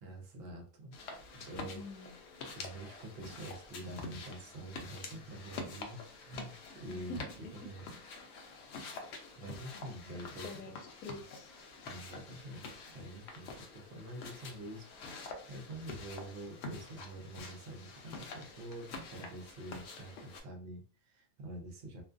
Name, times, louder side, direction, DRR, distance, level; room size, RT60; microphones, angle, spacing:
voice 1, 0.0-1.8 2.5-7.9 9.3-10.7 11.8-22.0, right 1 dB, 55° right, 3 dB, 0.7 m, -47 dB
sound 1, 0.9-20.4, left 3 dB, 65° left, 0.7 m, -47 dB
voice 2, 1.6-2.2 6.9-7.2 10.4-11.5 11.8-12.0, left 2 dB, 85° left, 5 dB, 1.1 m, -46 dB
2.5 x 2.3 x 2.4 m, 0.39 s
omnidirectional pair, 1.5 m